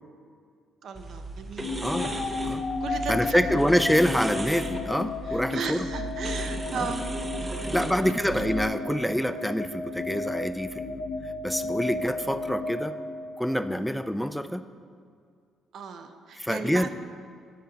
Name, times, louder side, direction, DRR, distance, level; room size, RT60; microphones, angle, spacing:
voice 1, 0.8-1.7 2.8-3.6 5.3-7.1 7.4-7.9 15.7-16.9, right 5 dB, 65° right, 7 dB, 0.7 m, -36 dB
sound 1, 0.9-8.7, right 2 dB, 25° right, 0.7 m, -36 dB
sound 2, 1.6-13.7, left 3 dB, 55° left, 0.5 m, -34 dB
voice 2, 1.8-2.1 2.4-2.7 3.1-5.9 6.7-6.9 7.6-13.0 13.4-14.7 16.3-16.9, equal, ahead, 11 dB, 0.4 m, -26 dB
9.4 x 3.8 x 7.0 m, 2.2 s
cardioid pair, 80°, 0 cm